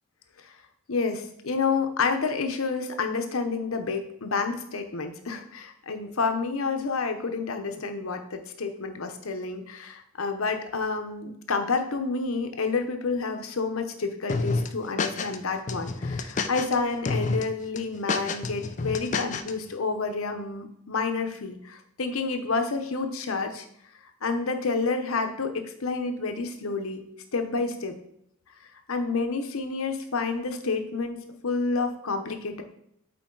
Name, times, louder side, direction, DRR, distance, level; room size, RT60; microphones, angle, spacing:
voice 1, 0.9-23.6 24.2-27.0 27.3-28.0 28.9-32.6, left 4 dB, 80° left, 6 dB, 0.8 m, -29 dB
sound 1, 14.3-15.4 15.7-16.8 17.1-17.4 17.8-19.5, left 3 dB, 35° left, 0.4 m, -28 dB
8.4 x 4.3 x 3.9 m, 0.75 s
head